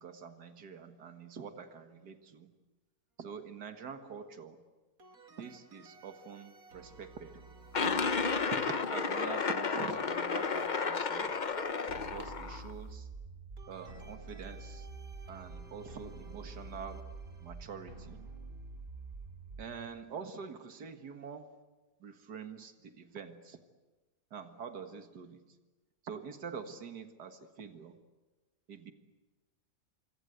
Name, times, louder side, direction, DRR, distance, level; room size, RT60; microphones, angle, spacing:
voice 1, 0.0-2.5 3.2-4.6 5.4-7.5 7.8-8.2 8.5-11.4 11.9-13.1 13.7-14.9 15.3-17.1 17.4-18.2 19.6-21.6 22.0-23.6 24.3-25.5 26.0-28.0 28.7-28.9, right 6 dB, 80° right, 7 dB, 2.2 m, -45 dB
sound 1, 5.0-10.6 13.6-19.7, right 2 dB, 60° right, 2.9 m, -58 dB
sound 2, 7.7-12.7, left 5 dB, 35° left, 0.9 m, -32 dB
sound 3, 11.9-19.9, right 3 dB, 35° right, 1.3 m, -47 dB
27.0 x 24.5 x 8.0 m, 1.2 s
omnidirectional pair, 1.7 m